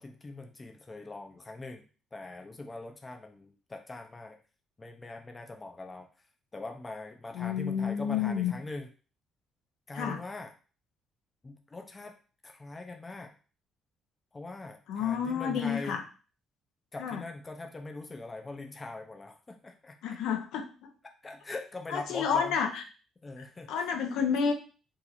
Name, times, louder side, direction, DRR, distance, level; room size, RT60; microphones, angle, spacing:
voice 1, 0.0-1.8 2.1-4.4 4.8-6.1 6.5-8.9 9.9-10.5 11.4-12.2 12.4-13.3 14.3-16.0 16.9-20.0 21.2-22.6 23.2-23.9, left 2 dB, 15° left, 4 dB, 0.4 m, -42 dB
voice 2, 7.3-8.5 9.9-10.2 14.9-16.0 17.0-17.2 20.0-20.9 21.9-22.8 23.7-24.5, left 7 dB, 90° left, 4 dB, 0.6 m, -30 dB
2.9 x 2.4 x 3.9 m, 0.37 s
cardioid pair, 160°, 0 cm